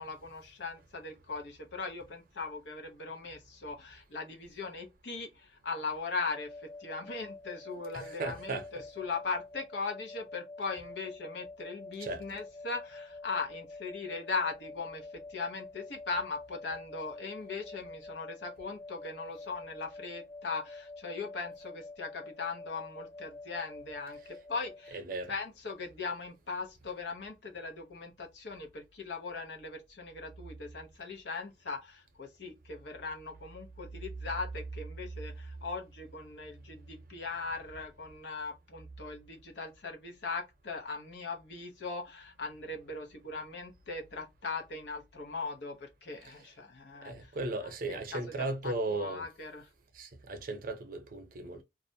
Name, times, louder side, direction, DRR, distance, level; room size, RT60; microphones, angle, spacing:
voice 1, 0.0-25.0 25.3-47.3 47.9-49.7, left 4 dB, 75° left, 0.8 m, -39 dB
sound 1, 6.3-24.9, left 3 dB, 10° left, 0.6 m, -48 dB
voice 2, 7.9-8.7 12.0-12.2 24.9-25.3 46.2-46.4 47.0-49.3 49.9-51.6, right 2 dB, 55° right, 0.7 m, -36 dB
2.4 x 2.1 x 2.6 m
head